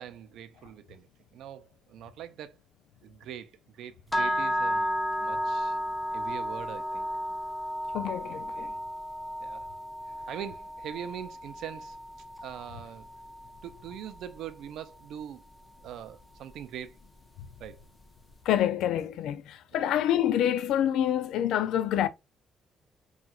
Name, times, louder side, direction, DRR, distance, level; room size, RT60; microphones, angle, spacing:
voice 1, 0.0-2.6 3.0-4.9 5.2-5.8 6.1-7.2 9.4-9.7 10.2-12.0 12.4-13.1 13.6-15.4 15.8-17.0 17.6-17.8 19.7-19.9, right 9 dB, 80° right, 0.5 m, -42 dB
sound 1, 4.1-14.2, equal, 15° left, 0.4 m, -33 dB
voice 2, 7.9-8.7 18.5-22.1, left 10 dB, 85° left, 0.3 m, -27 dB
4.2 x 2.4 x 2.3 m
cardioid pair, 90°, 0 cm